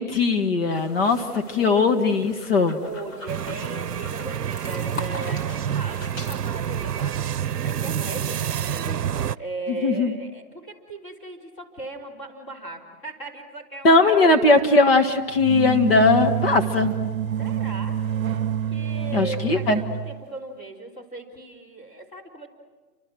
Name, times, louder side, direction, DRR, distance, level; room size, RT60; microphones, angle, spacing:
voice 1, 0.0-2.8 9.8-10.1 13.8-16.9 19.1-19.8, left 3 dB, 40° left, 5 dB, 1.7 m, -19 dB
sound 1, 0.6-6.4, left 2 dB, 55° left, 6.0 m, -41 dB
voice 2, 2.8-14.4 17.4-18.0 18.7-22.5, right 2 dB, 15° left, -3 dB, 3.9 m, -37 dB
sound 2, 3.3-9.4, right 9 dB, 85° right, 0.7 m, -28 dB
sound 3, 15.4-20.1, right 9 dB, 60° right, 0.9 m, -27 dB
30.0 x 25.0 x 6.2 m, 1.3 s
hypercardioid pair, 160°, 47 cm